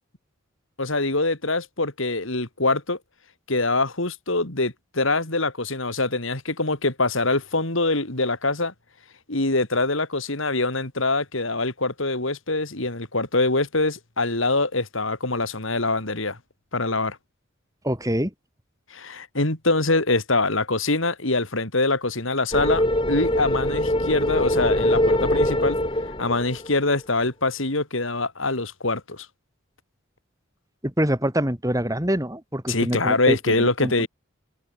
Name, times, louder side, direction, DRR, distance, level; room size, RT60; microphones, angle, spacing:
voice 1, 0.8-3.0 3.5-8.7 9.3-16.4 16.7-17.2 18.9-25.8 26.2-29.3 32.7-34.1, left 2 dB, 70° left, 3.3 m, -24 dB
voice 2, 17.8-18.3 30.8-34.1, equal, 15° right, 3.4 m, -25 dB
sound 1, 22.5-26.9, left 1 dB, 25° left, 5.6 m, -23 dB
head